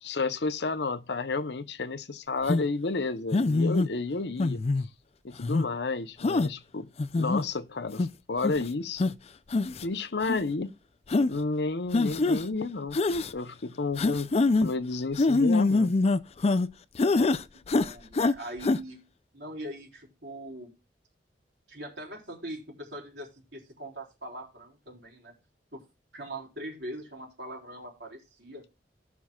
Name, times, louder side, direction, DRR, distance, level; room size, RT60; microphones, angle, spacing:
voice 1, 0.0-4.6 5.2-9.2 9.8-10.7 11.3-13.0 13.3-14.3 14.6-16.0, left 3 dB, 75° left, 0.8 m, -31 dB
sound 1, 2.5-2.7 3.3-3.9 4.4-4.9 5.4-5.7 6.2-6.5 7.0-7.4 8.0-8.1 8.4-8.6 9.0-9.1 9.5-9.9 10.2-10.4 11.1-11.3 11.9-12.4 12.9-13.3 14.0-14.7 15.2-16.7 17.0-17.4 17.7-18.3 18.6-18.8, left 3 dB, 35° left, 0.4 m, -24 dB
voice 2, 17.8-19.0 19.3-20.7 21.7-25.3 25.7-25.8 26.1-28.6, right 1 dB, 70° right, 4.0 m, -41 dB
18.5 x 6.3 x 2.3 m
head